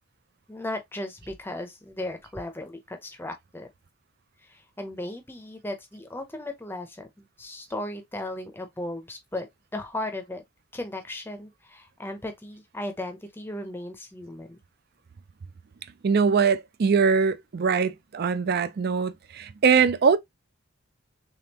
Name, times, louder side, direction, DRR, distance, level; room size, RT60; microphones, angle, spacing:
voice 1, 0.5-3.7 4.4-10.4 10.7-14.6, left 1 dB, 10° left, 0.6 m, -36 dB
voice 2, 16.0-20.2, right 5 dB, 45° right, 0.4 m, -22 dB
3.6 x 3.4 x 2.8 m
head